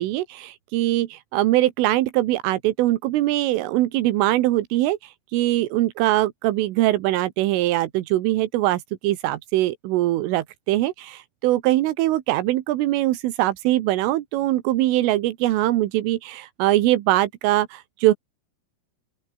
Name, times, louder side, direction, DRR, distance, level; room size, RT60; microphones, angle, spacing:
voice 1, 0.0-18.1, right 16 dB, 85° right, 3.9 m, -22 dB
open air
omnidirectional pair, 5.7 m